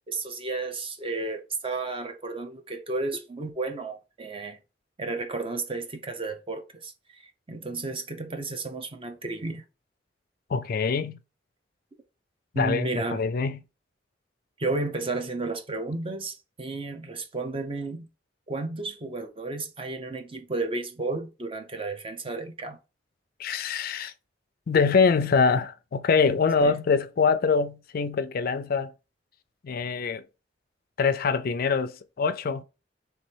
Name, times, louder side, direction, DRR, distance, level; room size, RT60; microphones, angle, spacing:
voice 1, 0.1-4.6 5.0-9.6 12.5-13.2 14.6-18.1 18.5-22.8 26.6-26.8, right 3 dB, 30° right, 0.7 m, -32 dB
voice 2, 10.5-11.2 12.5-13.6 23.4-24.1 24.7-28.9 29.6-30.2 31.0-32.6, left 5 dB, 50° left, 0.4 m, -24 dB
3.4 x 3.1 x 4.4 m
head